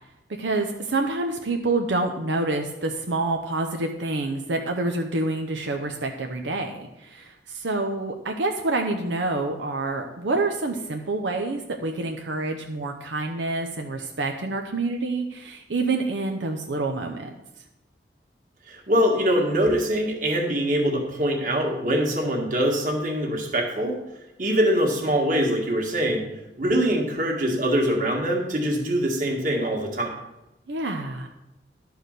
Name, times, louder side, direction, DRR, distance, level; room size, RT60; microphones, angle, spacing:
voice 1, 0.4-17.3 30.7-31.3, right 2 dB, 85° right, 3 dB, 0.8 m, -27 dB
voice 2, 18.7-24.0 24.4-26.2 26.6-30.1, equal, 45° right, 0 dB, 1.9 m, -23 dB
11.5 x 4.8 x 6.6 m, 0.93 s
head